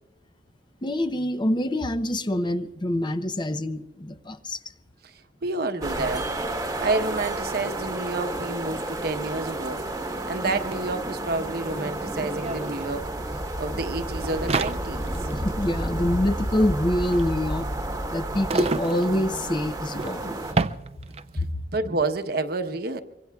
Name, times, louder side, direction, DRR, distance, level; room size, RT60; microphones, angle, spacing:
voice 1, 0.8-4.6 15.3-17.7 18.1-20.5 21.4-21.5, left 1 dB, 25° left, 0.7 m, -26 dB
voice 2, 5.4-6.3 6.8-9.8 10.3-13.1 13.6-15.1 21.7-23.0, right 3 dB, 60° right, 1.0 m, -29 dB
sound 1, 5.8-20.5, right 1 dB, 20° right, 1.2 m, -31 dB
sound 2, 10.7-10.8 11.0-21.5, right 3 dB, 35° right, 0.5 m, -32 dB
25.0 x 24.0 x 2.4 m
head